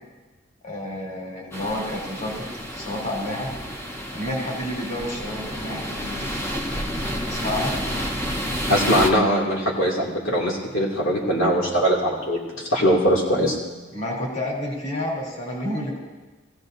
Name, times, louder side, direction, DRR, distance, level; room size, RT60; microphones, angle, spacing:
voice 1, 0.6-3.5 4.1-6.3 7.2-7.8 13.9-16.0, left 1 dB, 40° left, -3 dB, 3.4 m, -30 dB
sound 1, 1.5-9.1, equal, 15° left, 0.9 m, -30 dB
voice 2, 8.7-12.4 12.7-13.5, equal, 80° left, -4 dB, 2.5 m, -21 dB
19.5 x 16.0 x 2.7 m, 1.2 s
head